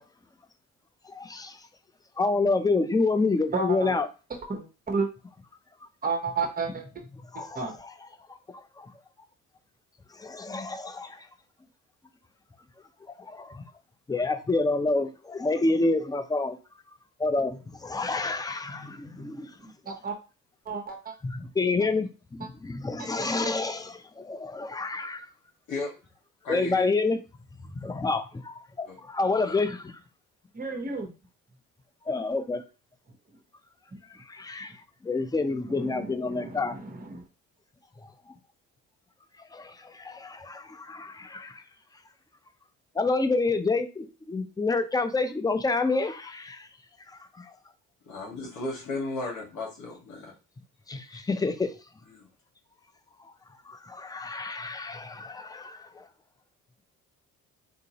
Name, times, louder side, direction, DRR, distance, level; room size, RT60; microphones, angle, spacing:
voice 1, 1.0-1.6 2.2-4.1 7.3-7.9 8.8-8.9 10.1-11.3 13.2-13.6 14.1-16.6 17.2-19.5 21.2-25.3 26.5-27.2 27.8-29.9 32.1-32.6 34.1-34.7 35.0-36.8 39.5-41.6 42.9-46.7 47.3-47.5 50.9-51.7 53.7-56.1, left 3 dB, 10° left, 0.5 m, -28 dB
voice 2, 3.5-4.0 4.4-5.1 6.0-6.8 7.3-7.8 19.2-20.1 20.7-21.1 23.2-23.5 30.5-31.1 35.7-37.2, right 4 dB, 25° right, 1.0 m, -32 dB
voice 3, 26.4-26.9 28.9-29.0 29.5-29.6 48.1-50.3 51.1-51.2 52.1-52.3, left 2 dB, 65° left, 1.9 m, -35 dB
3.8 x 2.6 x 2.9 m
supercardioid pair, 75°, 33 cm